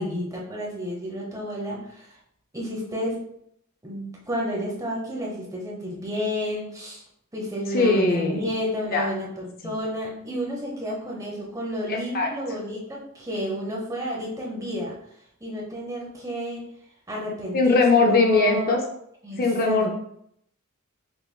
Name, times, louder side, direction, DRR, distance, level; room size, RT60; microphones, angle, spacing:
voice 1, 0.0-2.2 2.5-3.2 3.8-7.0 7.3-14.9 15.4-16.7 17.1-18.7 19.2-19.9, equal, 15° right, -3 dB, 1.0 m, -31 dB
voice 2, 7.7-8.4 8.9-9.1 11.9-12.3 17.5-18.8 19.4-19.9, left 3 dB, 40° left, 1 dB, 0.5 m, -20 dB
5.3 x 3.3 x 2.3 m, 0.72 s
head